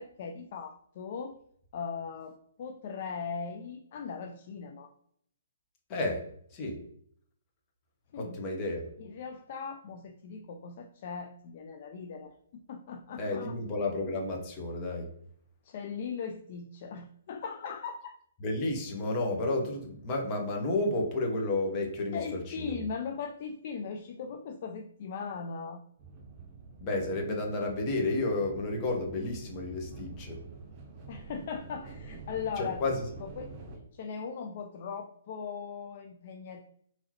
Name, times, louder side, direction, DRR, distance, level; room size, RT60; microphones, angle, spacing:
voice 1, 0.0-1.3 1.7-4.9 8.1-8.4 9.0-13.6 15.6-18.1 22.1-25.8 31.1-32.8 33.2-33.5 33.9-36.6, left 6 dB, 50° left, 5 dB, 0.3 m, -39 dB
voice 2, 8.2-8.8 13.2-15.1 18.4-22.8 26.8-30.4 32.6-33.0, left 2 dB, 30° left, 1 dB, 1.0 m, -31 dB
sound 1, 26.0-33.8, right 4 dB, 30° right, 0.8 m, -47 dB
3.7 x 2.9 x 2.9 m, 0.65 s
hypercardioid pair, 135°, 0 cm